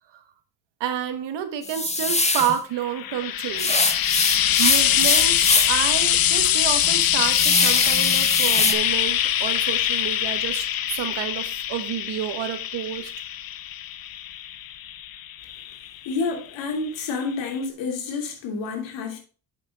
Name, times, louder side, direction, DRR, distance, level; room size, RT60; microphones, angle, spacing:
voice 1, 0.8-4.2 4.6-13.1, right 10 dB, 80° right, 1.6 m, -29 dB
sound 1, 1.6-2.6 3.6-5.8 6.3-6.4 6.8-8.7, left 3 dB, 15° left, 1.3 m, -22 dB
Frying (food), 2.8-16.3 17.2-17.3, left 11 dB, 55° left, 0.8 m, -23 dB
voice 2, 16.0-19.2, left 4 dB, 85° left, 2.9 m, -29 dB
8.4 x 7.0 x 3.6 m
cardioid pair, 85°, 43 cm